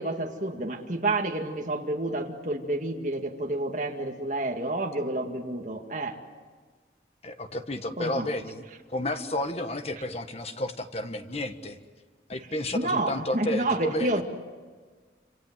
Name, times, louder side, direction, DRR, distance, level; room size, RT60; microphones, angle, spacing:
voice 1, 0.0-6.2 8.0-8.3 12.7-14.2, right 2 dB, 40° right, 1 dB, 2.2 m, -29 dB
voice 2, 7.2-8.6 8.9-11.8 12.3-14.2, left 1 dB, 35° left, 7 dB, 1.5 m, -32 dB
27.5 x 27.5 x 7.6 m, 1.5 s
head